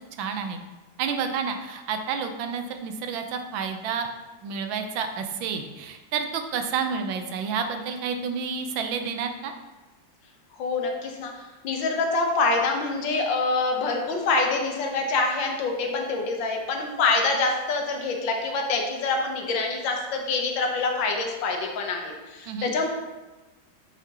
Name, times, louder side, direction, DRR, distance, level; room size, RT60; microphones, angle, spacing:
voice 1, 0.2-0.6 1.0-4.1 4.4-9.5 22.5-22.7, right 6 dB, 85° right, 6 dB, 1.4 m, -30 dB
voice 2, 10.6-11.3 11.6-22.9, left 3 dB, 80° left, 2 dB, 1.6 m, -25 dB
8.2 x 5.0 x 2.9 m, 1.2 s
omnidirectional pair, 2.0 m